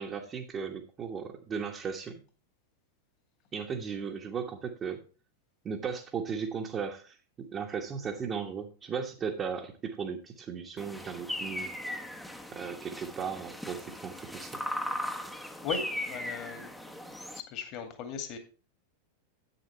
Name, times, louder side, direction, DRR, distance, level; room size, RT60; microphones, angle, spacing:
voice 1, 0.0-2.2 3.5-5.0 5.6-11.7 12.5-14.6, right 6 dB, 25° right, 0 dB, 1.4 m, -36 dB
sound 1, 10.8-17.4, left 1 dB, 5° left, 1.1 m, -38 dB
voice 2, 15.6-16.7 17.3-18.4, left 7 dB, 40° left, 7 dB, 2.2 m, -37 dB
10.5 x 8.8 x 3.3 m, 0.36 s
figure-of-eight pair, 90°, 0 cm